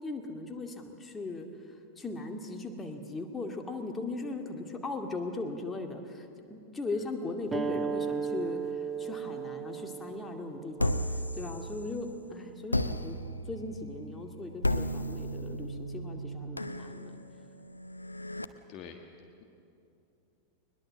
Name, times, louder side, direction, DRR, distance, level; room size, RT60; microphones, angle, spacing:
voice 1, 0.0-1.5 2.0-11.0 11.3-13.2 13.5-17.2, left 3 dB, 15° left, 4 dB, 2.2 m, -38 dB
sound 1, 7.5-12.6, right 6 dB, 15° right, 0.9 m, -36 dB
sound 2, 10.8-12.1 12.7-18.4, equal, 85° left, 0.7 m, -34 dB
voice 2, 18.7-19.1, left 7 dB, 40° left, 4 dB, 1.5 m, -46 dB
22.0 x 21.0 x 7.5 m, 2.7 s
figure-of-eight pair, 90°, 0 cm